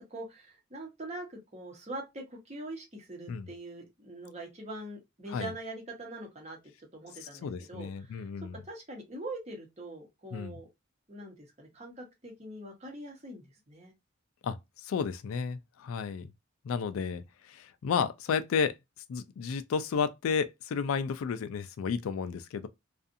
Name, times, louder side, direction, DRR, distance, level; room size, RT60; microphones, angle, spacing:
voice 1, 0.0-6.6 6.9-8.3 8.7-10.7 11.1-13.9, right 1 dB, 30° right, 0.9 m, -43 dB
voice 2, 7.4-8.6 10.3-10.6 14.4-16.3 16.6-18.7 19.1-22.7, left 6 dB, 80° left, 0.3 m, -32 dB
2.5 x 2.4 x 2.5 m
head